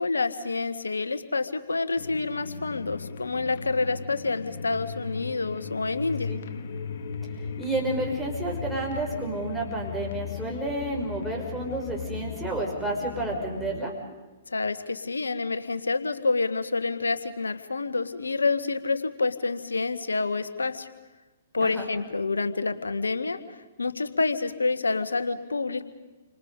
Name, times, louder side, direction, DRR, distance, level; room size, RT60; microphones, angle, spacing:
voice 1, 0.0-6.3 14.5-20.9 21.5-25.9, left 3 dB, 85° left, 11 dB, 1.5 m, -28 dB
sound 1, 2.0-13.8, left 6 dB, 60° left, 1.6 m, -37 dB
voice 2, 7.6-13.9 21.6-21.9, right 2 dB, 5° right, -2 dB, 6.3 m, -30 dB
30.0 x 25.5 x 5.2 m, 1.2 s
hypercardioid pair, 120°, 0 cm